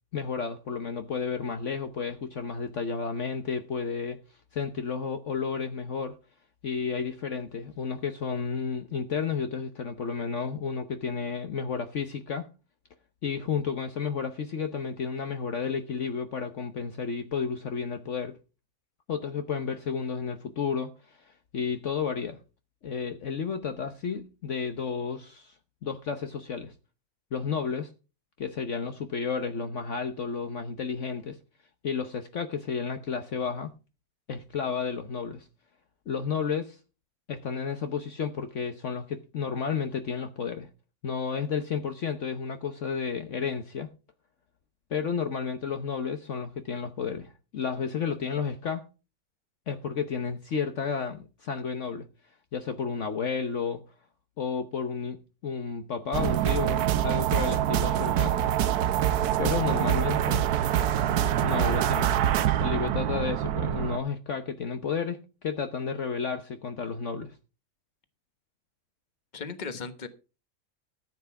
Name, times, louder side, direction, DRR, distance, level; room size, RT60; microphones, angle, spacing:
voice 1, 0.1-4.2 4.5-6.2 6.6-12.5 13.2-18.4 19.1-22.4 22.8-25.5 25.8-26.7 27.3-27.9 28.4-31.4 31.8-33.7 34.3-35.5 36.1-36.8 37.3-40.7 41.0-43.9 44.9-48.8 49.7-52.1 52.5-53.8 54.4-58.4 59.4-60.5 61.4-62.1 62.6-67.3, left 6 dB, 55° left, 1.2 m, -32 dB
sound 1, 56.1-64.0, right 11 dB, 90° right, 1.3 m, -25 dB
voice 2, 59.6-60.0 69.3-70.1, left 5 dB, 30° left, 1.3 m, -37 dB
14.0 x 8.0 x 4.7 m
omnidirectional pair, 1.6 m